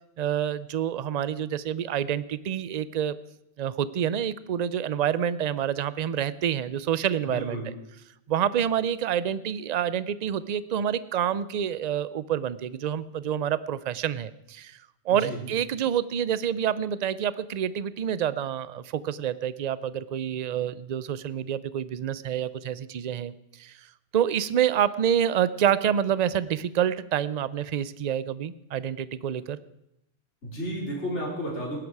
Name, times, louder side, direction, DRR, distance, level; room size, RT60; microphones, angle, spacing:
voice 1, 0.2-3.1 3.6-7.6 8.3-14.8 15.1-23.3 23.6-23.7 24.1-29.6, right 9 dB, 50° right, 16 dB, 0.5 m, -27 dB
voice 2, 7.3-7.7 15.1-15.4 30.4-31.8, equal, 70° left, -3 dB, 4.2 m, -32 dB
18.5 x 11.0 x 4.7 m, 0.82 s
omnidirectional pair, 1.2 m